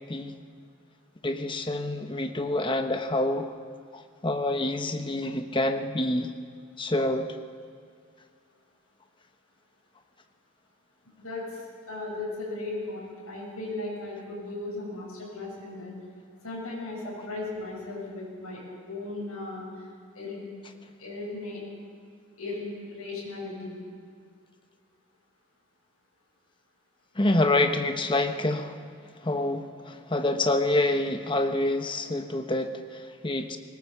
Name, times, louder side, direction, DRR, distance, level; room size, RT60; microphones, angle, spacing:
voice 1, 1.2-3.5 3.9-6.3 6.8-7.4 27.2-28.8 29.2-33.6, left 2 dB, 20° left, 7 dB, 1.0 m, -27 dB
voice 2, 11.9-15.9 16.4-18.6 18.9-19.7 20.1-20.4 21.0-21.6 22.4-23.8, left 2 dB, 75° left, -5 dB, 7.8 m, -36 dB
20.5 x 18.0 x 7.1 m, 2.2 s
head